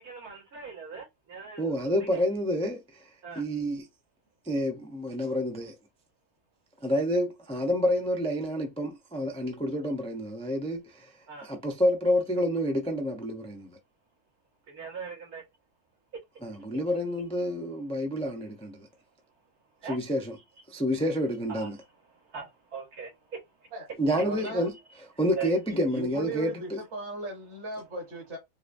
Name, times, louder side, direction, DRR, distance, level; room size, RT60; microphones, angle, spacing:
voice 1, 0.0-2.2 3.2-3.5 11.3-11.5 14.7-15.5 16.1-16.2 16.5-17.0 19.8-20.0 21.5-23.7 24.2-24.5 25.1-25.5, right 6 dB, 85° right, 2.2 m, -42 dB
voice 2, 1.6-2.8 3.4-3.8 4.5-5.7 6.8-11.1 11.4-13.8 16.4-18.9 19.9-20.3 20.7-21.8 24.0-24.7 25.2-26.8, equal, 10° left, 0.3 m, -28 dB
voice 3, 24.2-24.7 25.7-28.4, right 2 dB, 50° right, 1.4 m, -37 dB
4.8 x 2.3 x 2.6 m
omnidirectional pair, 1.6 m